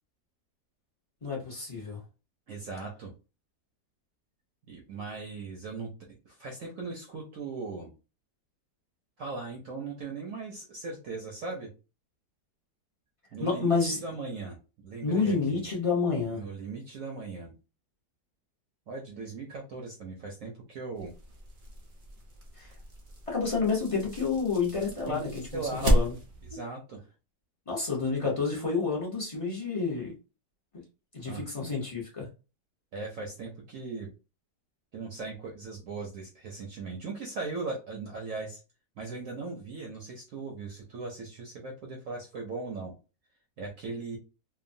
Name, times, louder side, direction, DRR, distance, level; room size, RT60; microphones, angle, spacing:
voice 1, 1.2-2.0 13.4-14.0 15.0-16.4 22.6-22.7 23.3-26.1 26.5-26.6 27.7-30.1 30.7-30.8 31.1-32.3, left 4 dB, 45° left, -3 dB, 0.4 m, -29 dB
voice 2, 2.5-3.1 4.7-5.9 6.3-7.9 9.2-11.7 13.3-15.6 16.3-17.5 18.9-21.1 25.1-25.9 26.4-27.0 31.2-31.4 32.9-34.1 34.9-38.6 39.0-42.9 43.6-44.2, right 3 dB, 65° right, 0 dB, 0.8 m, -39 dB
sound 1, 20.9-26.5, equal, 80° right, 0.4 m, -32 dB
2.9 x 2.2 x 2.6 m, 0.32 s
omnidirectional pair, 1.8 m